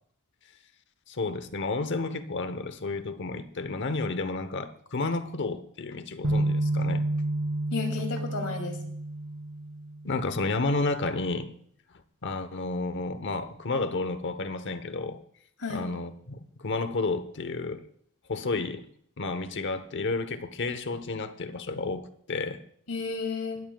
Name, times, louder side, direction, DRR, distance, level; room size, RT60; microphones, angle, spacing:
voice 1, 1.1-7.0 10.0-11.5 12.2-15.2 15.7-17.8 18.3-18.9 19.2-22.6, left 3 dB, 55° left, 0.9 m, -31 dB
sound 1, 6.2-10.3, right 1 dB, 80° right, 3.1 m, -30 dB
voice 2, 7.7-8.8 15.6-15.9 22.9-23.6, left 4 dB, 75° left, 2.7 m, -32 dB
22.0 x 13.0 x 2.3 m
head